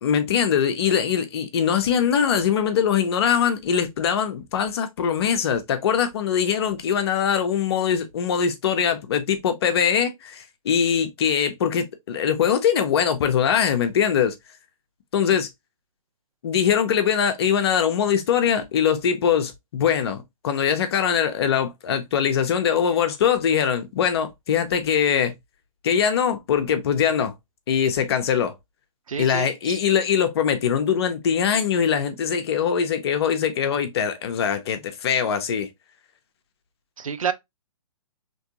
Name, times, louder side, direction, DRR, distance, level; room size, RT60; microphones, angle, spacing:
voice 1, 0.0-14.3 15.1-15.5 16.4-25.3 25.8-27.3 27.7-28.5 29.2-35.7, left 8 dB, 45° left, 0.8 m, -22 dB
voice 2, 29.1-29.8 37.0-37.3, right 7 dB, 70° right, 0.6 m, -29 dB
3.4 x 3.0 x 2.8 m
figure-of-eight pair, 130°, 18 cm